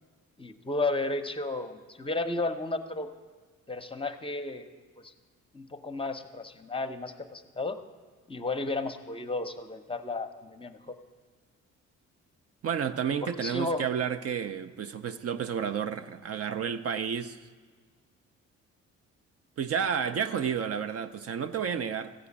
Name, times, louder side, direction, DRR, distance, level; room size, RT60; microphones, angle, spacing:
voice 1, 0.4-3.1 3.7-4.7 5.0-5.1 5.5-7.8 8.3-11.0 13.2-13.9, left 2 dB, 20° left, 0.7 m, -33 dB
voice 2, 12.6-17.4 19.6-22.1, right 7 dB, 50° right, 0.6 m, -31 dB
14.5 x 4.9 x 8.4 m
cardioid pair, 90°, 30 cm